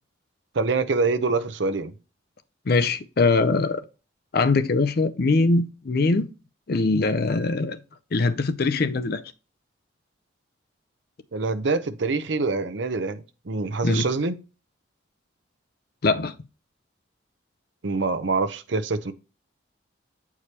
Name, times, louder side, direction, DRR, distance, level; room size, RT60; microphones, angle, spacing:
voice 1, 0.5-1.9 11.3-14.4 17.8-19.1, right 3 dB, 65° right, 0.6 m, -25 dB
voice 2, 2.7-3.8 4.3-6.3 6.7-7.8 8.1-9.2 13.8-14.1 16.0-16.3, left 3 dB, 50° left, 0.5 m, -22 dB
8.2 x 4.8 x 2.9 m
head